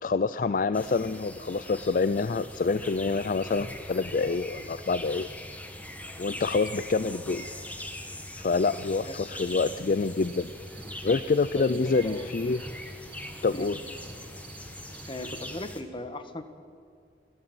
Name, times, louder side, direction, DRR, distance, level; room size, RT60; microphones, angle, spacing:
voice 1, 0.0-5.3 6.2-7.5 8.4-10.5 11.0-12.6 13.4-13.8, left 4 dB, 50° left, 14 dB, 0.4 m, -27 dB
sound 1, 0.7-15.8, left 1 dB, 10° left, 1.4 m, -41 dB
voice 2, 9.1-9.7 11.5-12.4 13.5-13.7 15.1-16.4, left 1 dB, 30° left, 9 dB, 1.3 m, -38 dB
sound 2, 9.8-15.6, right 3 dB, 60° right, 2.9 m, -50 dB
27.0 x 13.0 x 7.9 m, 2.3 s
head